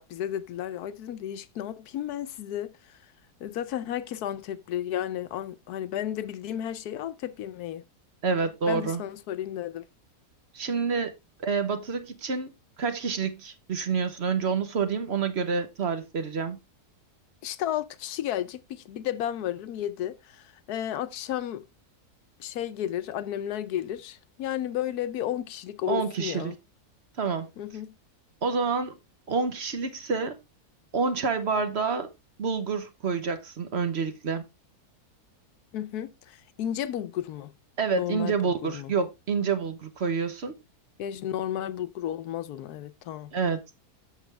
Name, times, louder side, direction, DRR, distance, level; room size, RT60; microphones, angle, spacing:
voice 1, 0.0-3.0 3.4-7.8 8.7-9.8 17.4-21.6 22.4-26.6 27.6-27.9 35.7-37.5 38.0-38.9 41.0-43.3, left 11 dB, 80° left, 1.2 m, -33 dB
voice 2, 8.2-9.0 10.5-11.1 11.4-12.5 12.8-16.6 25.9-26.5 27.2-27.5 28.4-29.0 29.3-30.4 30.9-32.1 32.4-34.4 37.8-40.6 43.3-43.6, right 5 dB, 45° right, 1.1 m, -28 dB
7.4 x 6.7 x 3.3 m
omnidirectional pair, 1.7 m